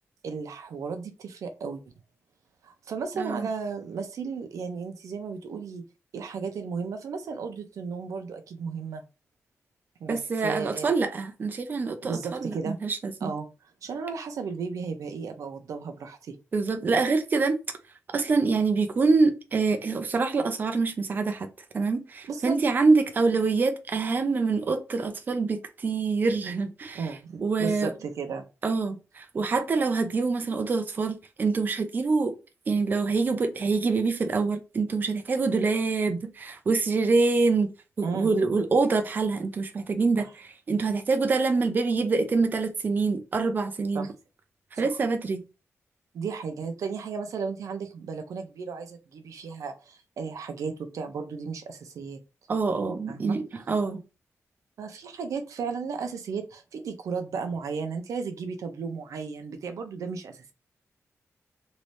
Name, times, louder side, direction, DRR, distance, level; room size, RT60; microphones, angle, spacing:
voice 1, 0.2-1.8 2.6-5.8 6.1-9.0 10.0-10.9 12.0-12.8 13.2-13.5 13.8-16.4 22.3-22.6 26.9-28.5 38.0-38.3 40.2-40.3 43.9-44.1 44.8-45.0 46.1-52.2 53.1-53.4 54.8-60.5, right 5 dB, 80° right, 0.6 m, -34 dB
voice 2, 3.2-3.5 10.1-13.3 16.5-17.6 18.1-21.5 21.7-27.0 27.4-27.9 28.6-32.3 32.7-37.7 38.0-44.1 44.8-45.4 52.5-54.0, right 4 dB, 35° right, 0.5 m, -25 dB
3.1 x 2.7 x 3.1 m
wide cardioid pair, 175°, 5 cm